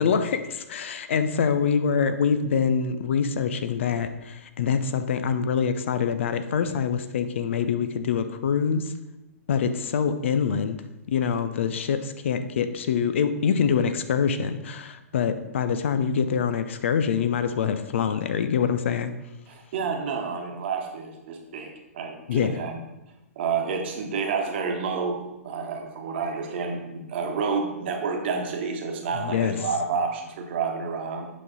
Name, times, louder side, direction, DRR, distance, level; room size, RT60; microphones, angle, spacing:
voice 1, 0.0-8.9 9.5-10.8 11.1-19.1 22.3-22.6 29.2-29.6, left 6 dB, 50° left, 10 dB, 0.5 m, -25 dB
voice 2, 19.5-22.8 23.4-31.3, right 5 dB, 45° right, 3 dB, 1.2 m, -29 dB
8.3 x 5.3 x 4.0 m, 0.99 s
figure-of-eight pair, 115°, 8 cm